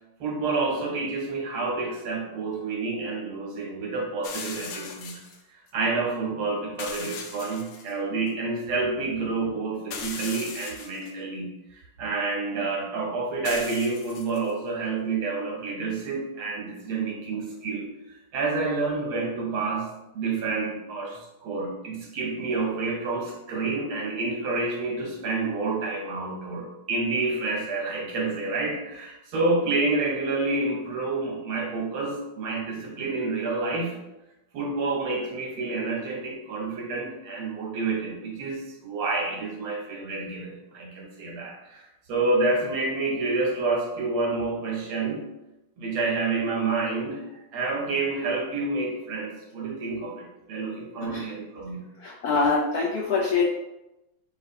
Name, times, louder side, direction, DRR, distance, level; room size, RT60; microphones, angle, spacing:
voice 1, 0.2-5.2 5.5-19.9 20.1-34.0 34.5-45.2 45.8-50.1 50.5-51.9, right 3 dB, 80° right, -1 dB, 1.9 m, -29 dB
sound 1, 4.2-5.4 6.8-7.9 8.3-8.4 9.9-11.1 13.5-14.5, left 6 dB, 85° left, 1.5 m, -38 dB
voice 2, 52.0-53.4, left 4 dB, 70° left, -4 dB, 0.9 m, -24 dB
4.1 x 2.9 x 4.0 m, 0.93 s
omnidirectional pair, 2.3 m